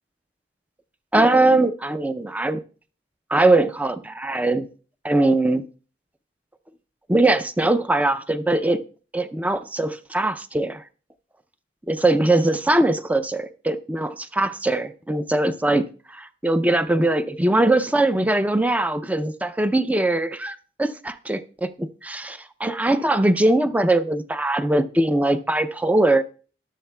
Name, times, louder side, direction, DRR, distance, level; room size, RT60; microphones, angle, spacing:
voice 1, 1.1-2.6 3.3-4.7 5.0-5.6 7.1-8.8 9.1-10.8 11.9-26.2, right 2 dB, 10° right, 0.4 m, -21 dB
14.0 x 11.0 x 2.3 m
head